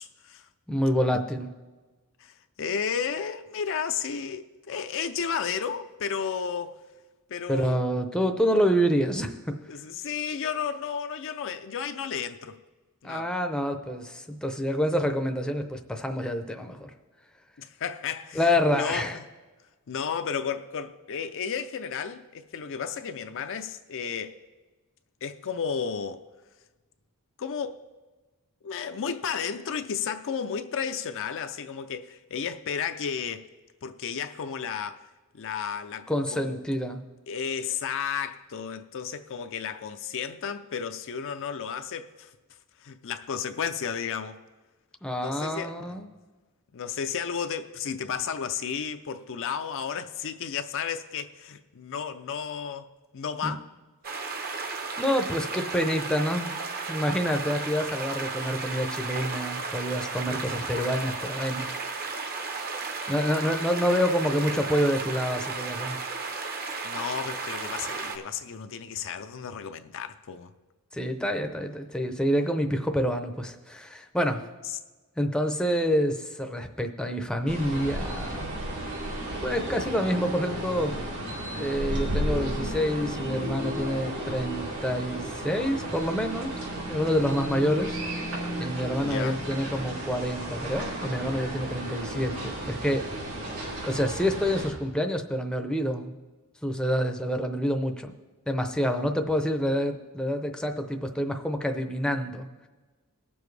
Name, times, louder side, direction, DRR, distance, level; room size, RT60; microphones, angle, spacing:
voice 1, 0.0-0.5 2.2-6.8 7.3-7.8 9.7-12.6 13.0-13.3 17.6-19.2 19.9-24.4 25.2-26.2 27.4-27.8 28.6-33.5 33.8-36.6 37.3-42.3 42.8-44.4 45.2-46.0 46.7-53.7 66.8-70.5 74.6-74.8 89.0-89.4, left 7 dB, 60° left, 0.5 m, -33 dB
voice 2, 0.7-1.5 7.5-9.6 13.0-16.9 18.4-19.2 36.1-37.0 45.0-46.1 53.4-53.5 55.0-56.5 56.9-61.7 63.1-66.0 70.9-74.5 75.2-78.5 79.4-80.9 81.6-86.5 86.9-88.0 88.6-93.0 93.8-96.1 96.6-98.1 98.5-102.5, equal, 5° left, 0.6 m, -27 dB
sound 1, 54.0-68.2, right 4 dB, 45° right, 0.9 m, -34 dB
sound 2, 77.5-94.7, right 1 dB, 80° right, 3.9 m, -33 dB
19.0 x 7.0 x 3.3 m
head